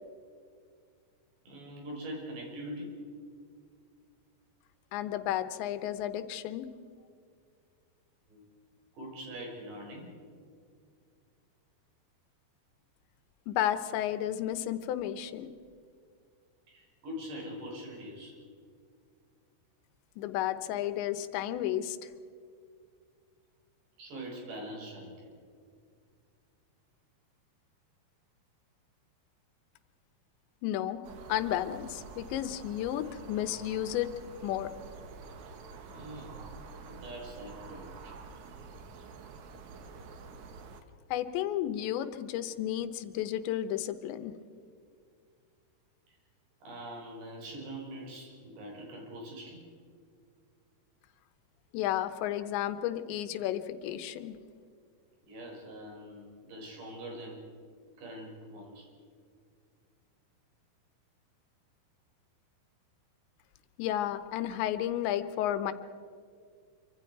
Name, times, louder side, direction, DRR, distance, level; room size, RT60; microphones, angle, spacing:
voice 1, 1.5-3.0 8.3-8.4 8.9-10.1 16.7-18.4 24.0-25.3 35.9-36.4 36.8-38.2 46.1-46.2 46.6-49.7 55.2-57.4 58.0-58.9, equal, 75° right, -1 dB, 7.2 m, -43 dB
voice 2, 4.9-6.7 13.5-15.5 20.2-22.0 30.6-31.0 31.3-34.1 34.4-34.7 41.1-44.3 51.7-54.4 63.8-65.7, left 12 dB, 90° left, 11 dB, 3.3 m, -32 dB
sound 1, 31.0-40.8, right 4 dB, 60° right, 2.1 m, -48 dB
26.0 x 25.0 x 4.7 m, 2.2 s
omnidirectional pair, 5.0 m